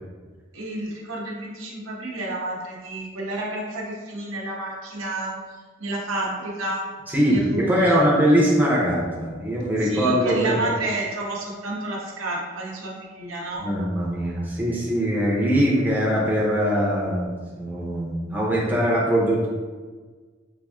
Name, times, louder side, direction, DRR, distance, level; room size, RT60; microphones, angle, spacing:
voice 1, 0.5-6.9 7.3-8.1 9.8-13.7, right 2 dB, 90° right, -2 dB, 0.8 m, -30 dB
voice 2, 7.1-10.6 13.6-19.5, equal, 10° right, -5 dB, 0.6 m, -22 dB
4.2 x 2.6 x 2.3 m, 1.5 s
head